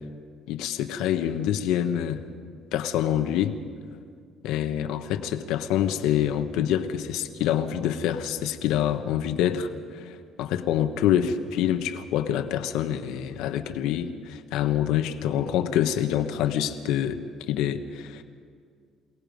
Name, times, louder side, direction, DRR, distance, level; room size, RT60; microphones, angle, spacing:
voice 1, 0.5-2.2 2.7-3.5 4.4-17.2 17.5-18.2, left 10 dB, 90° left, 8 dB, 1.2 m, -26 dB
28.0 x 18.0 x 5.3 m, 2.2 s
cardioid pair, 150°, 0 cm